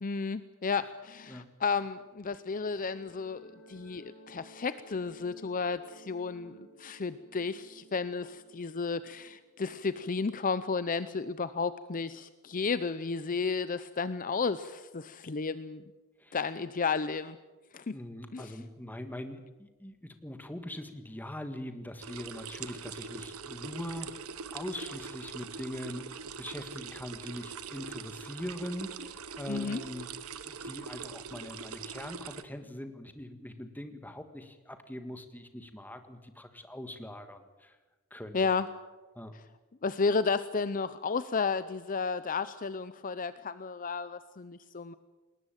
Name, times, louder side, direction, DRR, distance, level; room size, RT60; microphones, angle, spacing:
voice 1, 0.0-15.8 16.3-17.4 17.7-18.0 18.3-18.6 29.5-29.8 38.3-38.7 39.8-44.9, left 4 dB, 40° left, 14 dB, 0.6 m, -33 dB
sound 1, 2.0-10.6, right 1 dB, 60° left, 7.9 m, -57 dB
voice 2, 17.9-24.1 24.5-30.1 30.4-37.8 38.1-38.6 39.2-39.4, left 1 dB, 10° left, 8 dB, 1.7 m, -42 dB
sound 2, 22.0-32.4, right 5 dB, 70° right, 1.2 m, -42 dB
20.5 x 19.5 x 9.1 m, 1.2 s
head